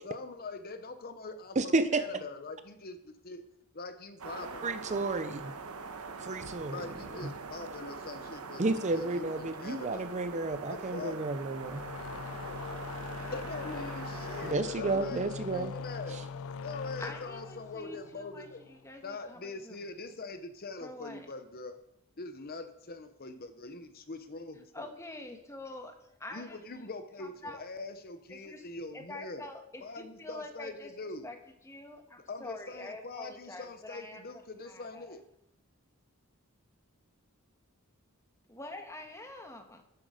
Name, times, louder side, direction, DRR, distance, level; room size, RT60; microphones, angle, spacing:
voice 1, 0.0-3.4 3.7-4.6 6.7-8.6 8.9-10.1 10.7-11.2 13.3-16.2 16.6-18.6 19.0-21.8 22.2-24.9 26.3-29.5 29.8-31.3 32.3-35.3, left 3 dB, 45° left, 9 dB, 0.8 m, -43 dB
voice 2, 1.6-2.2 4.6-5.5 6.2-6.9 7.2-7.3 8.6-11.8 14.4-15.7 16.1-16.2, right 3 dB, 30° right, 11 dB, 0.6 m, -31 dB
sound 1, 4.2-14.5, right 4 dB, 85° right, 1.1 m, -43 dB
sound 2, 11.5-18.9, left 6 dB, 65° left, 0.4 m, -41 dB
voice 3, 17.0-19.8 20.8-21.3 24.7-26.6 27.2-27.6 28.3-28.6 28.9-30.9 31.2-31.4 31.6-35.2 38.5-39.8, left 2 dB, 15° left, 4 dB, 1.4 m, -46 dB
12.5 x 8.1 x 5.0 m, 0.77 s
head